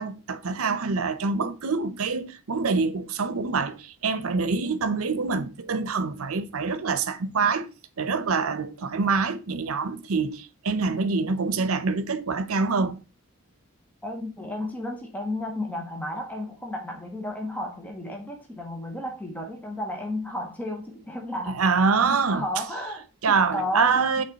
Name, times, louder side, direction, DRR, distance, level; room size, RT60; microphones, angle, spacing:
voice 1, 0.0-7.7 8.0-13.0 21.6-22.5 23.2-24.2, right 4 dB, 85° right, 0.7 m, -25 dB
voice 2, 14.0-21.7 22.3-24.2, left 1 dB, 5° left, 0.8 m, -33 dB
5.4 x 3.5 x 5.1 m
head